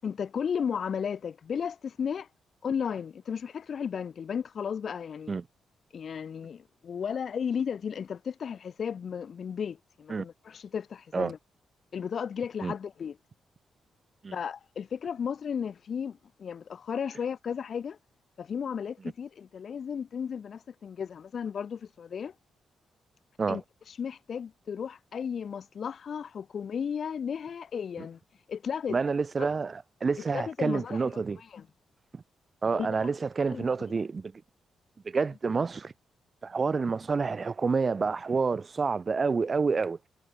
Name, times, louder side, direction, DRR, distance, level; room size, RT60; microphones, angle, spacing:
voice 1, 0.0-2.3 2.6-5.3 5.9-11.4 11.9-13.2 14.3-18.0 18.4-22.3 23.5-23.6 23.9-28.2 28.5-29.0 29.4-29.5 30.3-31.1 31.4-31.7 32.7-33.1 33.4-33.7, left 7 dB, 60° left, 0.4 m, -34 dB
voice 2, 28.9-31.4 32.1-32.2 32.6-34.3 35.1-35.9 36.4-40.0, right 4 dB, 45° right, 0.4 m, -28 dB
hypercardioid pair, 40°, 0 cm